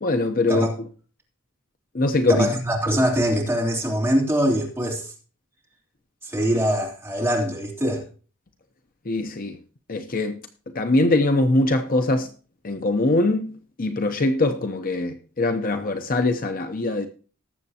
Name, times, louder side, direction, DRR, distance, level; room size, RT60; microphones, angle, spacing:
voice 1, 0.0-0.7 1.9-2.5 9.1-9.6 9.9-10.4 10.7-12.3 12.6-13.5 13.8-17.1, left 2 dB, 40° left, 0.8 m, -22 dB
voice 2, 2.3-5.1 6.2-8.0, equal, 10° right, 3.2 m, -23 dB
19.0 x 7.4 x 2.8 m
head